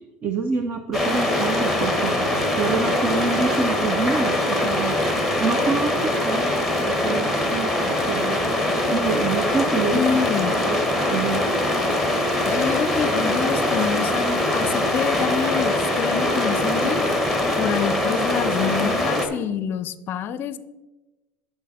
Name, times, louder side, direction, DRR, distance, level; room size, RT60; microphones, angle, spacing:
voice 1, 0.2-2.2 2.5-5.0 5.4-10.3 10.6-11.4, right 5 dB, 30° right, 8 dB, 0.5 m, -27 dB
sound 1, 0.9-19.3, left 1 dB, 5° right, 1.1 m, -22 dB
voice 2, 9.9-10.5 12.5-17.0 17.6-20.6, left 7 dB, 40° left, 14 dB, 0.5 m, -27 dB
9.9 x 5.8 x 4.2 m, 1.1 s
supercardioid pair, 125°, 6 cm